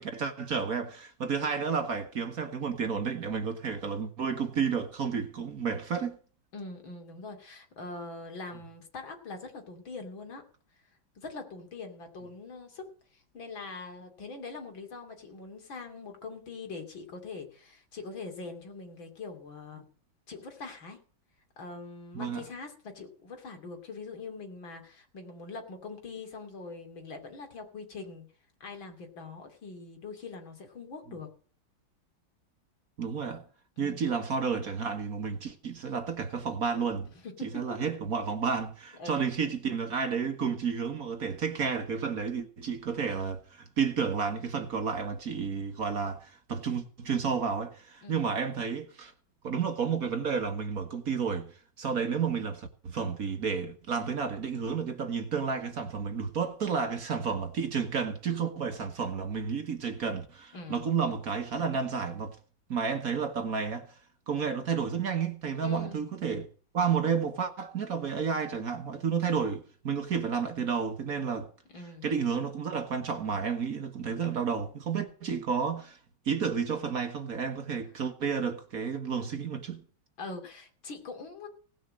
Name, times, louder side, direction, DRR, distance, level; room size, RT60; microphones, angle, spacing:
voice 1, 0.0-6.2 22.1-22.4 33.0-33.4 33.8-37.1 37.4-49.1 49.4-51.5 51.8-62.4 62.7-63.9 64.3-66.5 66.7-71.5 72.0-76.0 76.2-79.8, right 6 dB, 50° right, 1.7 m, -31 dB
voice 2, 6.5-10.4 11.1-19.9 20.3-21.0 21.6-28.2 28.6-31.3 33.8-34.1 37.2-37.8 39.0-39.3 48.0-48.4 60.5-60.9 65.6-66.0 71.7-72.1 80.2-81.5, left 3 dB, 75° left, 3.5 m, -43 dB
18.0 x 6.6 x 7.6 m
omnidirectional pair, 2.1 m